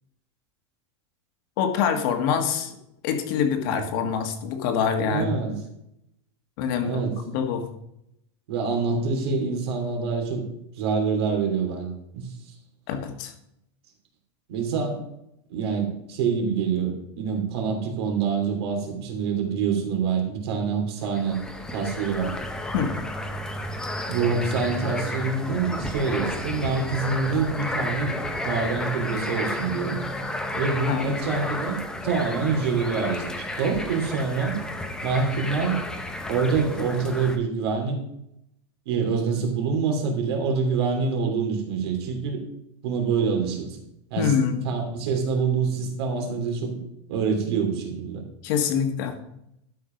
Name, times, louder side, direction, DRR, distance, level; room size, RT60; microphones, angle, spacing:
voice 1, 1.6-2.7 3.0-5.3 6.6-7.0 7.3-7.6 12.9-13.3 22.7-22.9 30.9-31.1 44.2-44.6 48.4-49.2, left 7 dB, 50° left, 5 dB, 1.6 m, -25 dB
voice 2, 5.0-5.5 6.8-7.1 8.5-10.4 10.8-12.3 14.5-15.0 15.5-21.4 21.7-22.3 24.1-28.2 28.4-30.0 30.5-34.6 35.0-35.8 36.3-38.0 38.8-42.4 42.8-43.8 44.1-44.3 44.6-46.8 47.1-48.2, right 5 dB, 65° right, 3 dB, 3.1 m, -26 dB
sound 1, 21.1-37.4, left 1 dB, 5° left, 0.7 m, -32 dB
12.0 x 5.7 x 5.2 m, 0.79 s
supercardioid pair, 165°, 14 cm